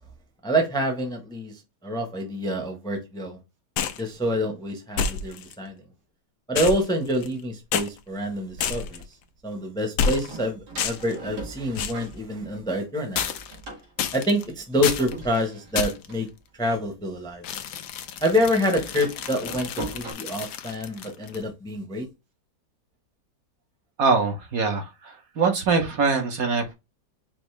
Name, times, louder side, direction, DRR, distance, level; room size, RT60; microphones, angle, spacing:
voice 1, 0.4-1.5 1.8-3.4 4.0-5.8 6.5-9.0 9.4-13.3 14.1-16.3 16.6-17.4 18.2-22.0, equal, 5° left, 0.9 m, -27 dB
sound 1, 3.8-4.1 5.0-5.5 6.6-7.4 7.7-7.9 8.6-9.0 10.0-10.4 10.8-11.2 11.8-12.1 13.2-13.6 14.0-14.4 14.8-15.1 15.8-16.1 17.4-21.4, left 7 dB, 80° left, 1.3 m, -29 dB
Door, 7.9-9.1 10.3-12.8 13.1-17.6 17.9-20.1, right 2 dB, 80° right, 2.4 m, -41 dB
voice 2, 24.0-26.7, right 4 dB, 60° right, 1.5 m, -23 dB
5.2 x 2.8 x 3.3 m
omnidirectional pair, 1.8 m